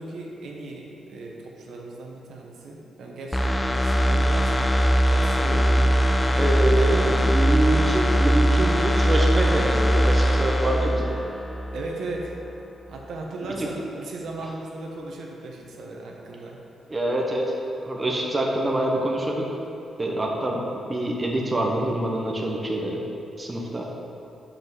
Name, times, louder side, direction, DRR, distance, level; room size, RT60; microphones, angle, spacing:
voice 1, 0.0-7.4 11.7-12.3 12.9-16.6, right 2 dB, 75° right, -1 dB, 1.1 m, -37 dB
sound 1, 3.3-12.0 12.3-12.5, equal, 10° left, 0.4 m, -21 dB
voice 2, 6.4-11.1 13.6-13.7 16.9-17.5 17.8-19.5 20.0-20.6 20.9-23.0 23.4-23.9, right 1 dB, 20° right, -1 dB, 0.9 m, -25 dB
5.7 x 5.6 x 6.0 m, 2.7 s
cardioid pair, 115°, 0 cm